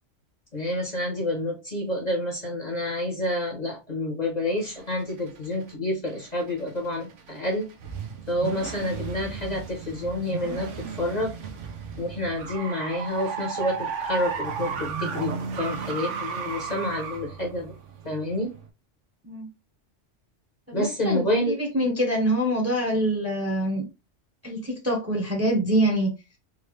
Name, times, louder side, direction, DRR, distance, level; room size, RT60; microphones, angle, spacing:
voice 1, 0.5-7.7 8.3-10.7 11.0-11.3 12.0-17.7 18.0-18.5 20.7-21.6, left 1 dB, 35° left, 1 dB, 1.1 m, -28 dB
sound 1, 4.6-5.7 6.1-18.7, right 5 dB, 75° right, 1.1 m, -34 dB
voice 2, 20.7-23.8 24.4-26.1, right 1 dB, 15° right, 0 dB, 1.0 m, -25 dB
3.8 x 2.8 x 3.1 m, 0.26 s
omnidirectional pair, 1.3 m